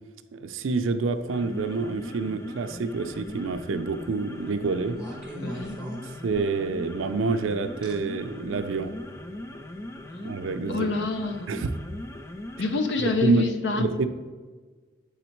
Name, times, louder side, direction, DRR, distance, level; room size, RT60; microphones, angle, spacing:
voice 1, 0.3-5.0 6.2-9.0 10.2-10.9 11.5-11.7 13.2-13.5 13.8-14.1, right 4 dB, 90° right, 0.5 m, -27 dB
sound 1, 1.2-13.2, left 1 dB, 15° left, 0.3 m, -39 dB
sound 2, 4.9-6.7 7.8-7.9 8.8-9.0, right 1 dB, 5° right, 1.2 m, -40 dB
voice 2, 5.4-5.8 10.1-10.2 10.7-11.6 12.6-13.9, left 3 dB, 60° left, 0.7 m, -27 dB
7.9 x 4.0 x 4.5 m
head